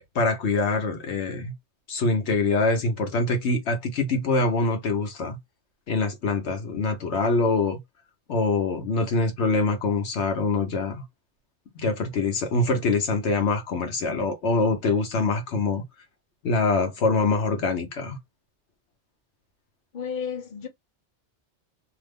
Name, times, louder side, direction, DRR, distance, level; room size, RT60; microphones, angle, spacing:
voice 1, 0.1-1.5 1.9-5.4 5.9-7.8 8.3-11.0 11.7-15.8 16.4-18.2, left 3 dB, 75° left, 1.1 m, -24 dB
voice 2, 19.9-20.7, left 6 dB, 45° left, 1.0 m, -32 dB
2.9 x 2.0 x 3.4 m
omnidirectional pair, 1.2 m